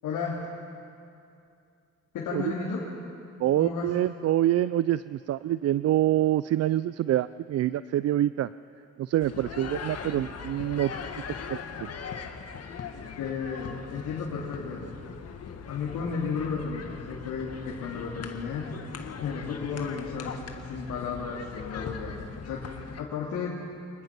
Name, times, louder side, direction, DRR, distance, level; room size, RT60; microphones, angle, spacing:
voice 1, 0.0-0.4 2.1-2.8 3.6-3.9 13.2-15.1 15.7-18.7 19.2-20.3 20.6-22.6 23.0-23.6, left 5 dB, 85° left, -4 dB, 2.9 m, -33 dB
voice 2, 3.4-8.5 9.0-10.9 11.5-11.9, right 13 dB, 55° right, 16 dB, 0.4 m, -26 dB
sound 1, 9.2-23.0, left 6 dB, 55° left, 1.7 m, -40 dB
25.5 x 20.0 x 6.1 m, 2.5 s
cardioid pair, 90°, 30 cm